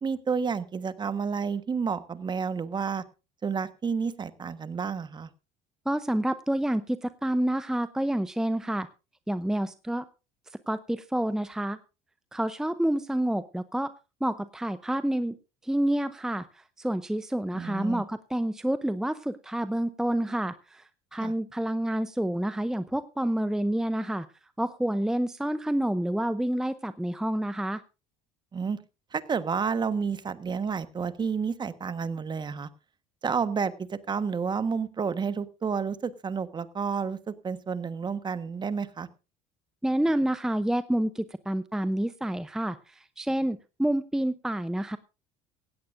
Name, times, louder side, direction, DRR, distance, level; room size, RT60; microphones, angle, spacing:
voice 1, 0.0-3.0 3.4-5.3 17.5-18.0 21.2-21.3 28.5-28.8 29.1-32.7 33.2-39.1, right 5 dB, 30° right, 13 dB, 1.2 m, -30 dB
voice 2, 5.9-8.9 9.3-10.1 10.5-11.8 12.3-13.9 14.2-15.4 15.6-24.3 24.6-27.8 39.8-45.0, right 1 dB, 5° right, 13 dB, 0.6 m, -28 dB
16.5 x 16.0 x 2.6 m, 0.29 s
hypercardioid pair, 75°, 15 cm